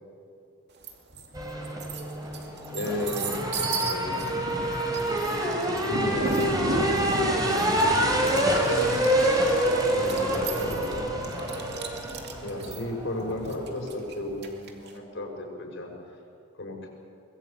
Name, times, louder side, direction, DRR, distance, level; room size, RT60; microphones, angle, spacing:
sound 1, 0.8-1.3 1.6-14.9, right 2 dB, 55° right, 2.5 m, -34 dB
sound 2, 1.3-13.9, right 1 dB, 20° right, 3.8 m, -27 dB
voice 1, 2.7-4.3 5.9-9.1 9.9-11.1 12.4-15.9 16.6-16.9, left 1 dB, 60° left, 0 dB, 5.9 m, -34 dB
Motorcycle / Engine, 4.9-10.7, right 2 dB, 35° right, 3.0 m, -37 dB
24.0 x 20.5 x 8.5 m, 2.7 s
head